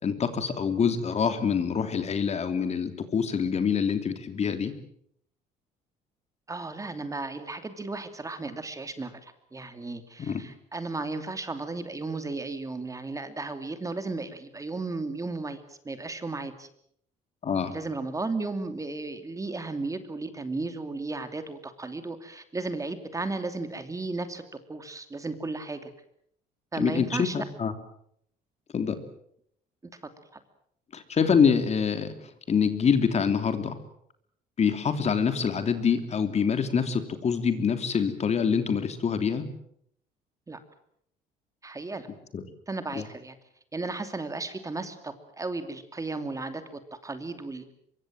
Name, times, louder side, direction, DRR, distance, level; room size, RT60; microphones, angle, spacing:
voice 1, 0.0-4.7 10.2-10.4 17.4-17.7 26.8-27.7 28.7-29.0 30.9-32.1 32.5-33.8 34.6-39.4 42.3-42.4 42.9-43.0, left 6 dB, 40° left, 9 dB, 3.0 m, -25 dB
voice 2, 6.5-16.7 17.6-24.4 24.7-25.9 26.7-27.4 29.8-29.9 30.2-30.4 40.5-40.6 41.6-42.1 42.7-43.4 43.7-47.7, right 3 dB, 20° right, 9 dB, 2.7 m, -34 dB
24.5 x 23.5 x 7.6 m, 0.68 s
cardioid pair, 110°, 17 cm